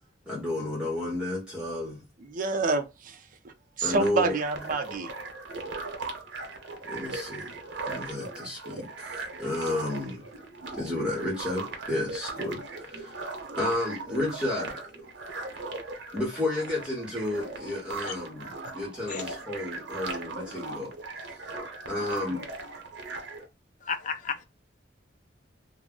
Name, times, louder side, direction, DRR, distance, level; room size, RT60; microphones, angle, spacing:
voice 1, 0.3-2.0 3.8-4.4 6.8-7.5 7.9-10.3 10.7-15.1 16.1-21.4 21.9-22.4, left 2 dB, 5° right, 0.9 m, -32 dB
voice 2, 2.3-3.2 3.8-5.1, right 3 dB, 45° right, 0.5 m, -27 dB
sound 1, 3.8-23.5, right 3 dB, 75° right, 0.7 m, -39 dB
voice 3, 23.9-24.4, left 6 dB, 45° left, 0.4 m, -32 dB
2.3 x 2.0 x 3.6 m
head